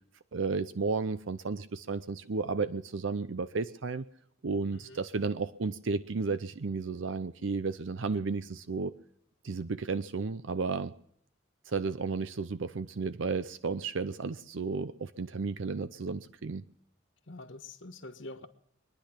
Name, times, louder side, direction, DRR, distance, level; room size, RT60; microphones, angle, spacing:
voice 1, 0.3-4.1 4.4-8.9 9.4-10.9 11.7-16.6, right 4 dB, 70° right, 0.6 m, -33 dB
voice 2, 17.3-18.5, left 2 dB, 70° left, 1.3 m, -45 dB
24.0 x 10.5 x 5.8 m
head